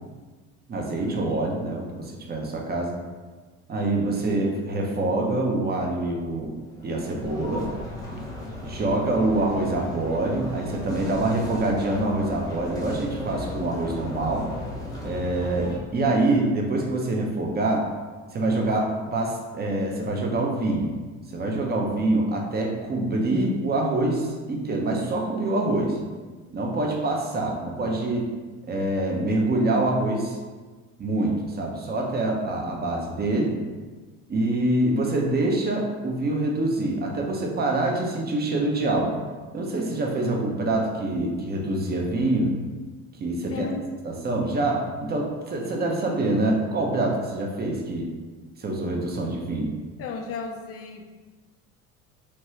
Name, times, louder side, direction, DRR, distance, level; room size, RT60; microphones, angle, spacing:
voice 1, 0.7-3.0 3.7-6.5 6.8-7.7 8.6-14.5 15.0-17.9 18.3-20.9 21.3-26.0 26.5-28.2 28.7-30.4 31.0-33.6 34.3-39.2 39.5-42.5 43.2-43.7 44.0-48.1 48.6-49.7, right 2 dB, 25° right, 0 dB, 0.6 m, -25 dB
sound 1, 6.6-15.8, left 1 dB, 10° left, 0.8 m, -36 dB
voice 2, 43.5-43.9 50.0-51.1, left 4 dB, 40° left, 4 dB, 0.5 m, -33 dB
2.9 x 2.2 x 3.0 m, 1.4 s
hypercardioid pair, 75°, 38 cm